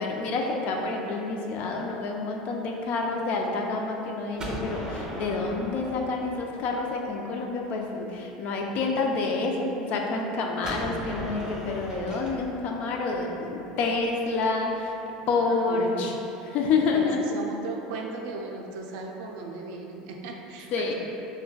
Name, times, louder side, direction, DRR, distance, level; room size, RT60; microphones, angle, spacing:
voice 1, 0.0-14.9 15.3-16.2 16.5-17.2 20.7-20.9, left 3 dB, 55° left, 1 dB, 0.4 m, -28 dB
Gunshot gunfire, 4.4-7.2 10.6-14.5, right 1 dB, 20° right, 0.7 m, -38 dB
voice 2, 15.4-16.0 16.9-20.9, right 3 dB, 70° right, 1 dB, 0.3 m, -37 dB
3.8 x 2.1 x 2.2 m, 2.9 s
supercardioid pair, 95°, 3 cm